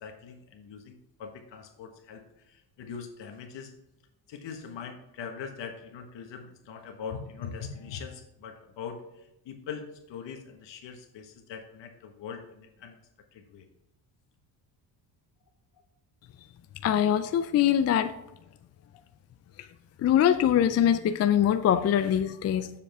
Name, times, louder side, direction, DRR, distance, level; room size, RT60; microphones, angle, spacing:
voice 1, 0.0-3.7 4.3-13.0 13.3-13.6, left 6 dB, 70° left, 5 dB, 1.4 m, -42 dB
voice 2, 16.8-18.1 20.0-22.7, left 10 dB, 35° left, 10 dB, 0.4 m, -23 dB
7.3 x 6.9 x 3.5 m, 0.89 s
cardioid pair, 115°, 45 cm